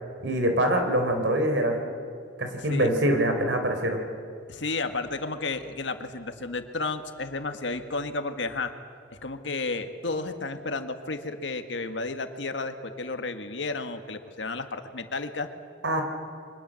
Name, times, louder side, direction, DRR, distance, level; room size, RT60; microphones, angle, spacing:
voice 1, 0.2-1.8 2.4-4.0 15.8-16.0, right 1 dB, 65° right, 5 dB, 4.2 m, -24 dB
voice 2, 2.6-2.9 4.5-8.7 9.1-15.5, left 3 dB, 70° left, 7 dB, 1.8 m, -32 dB
29.5 x 24.5 x 7.8 m, 2.3 s
head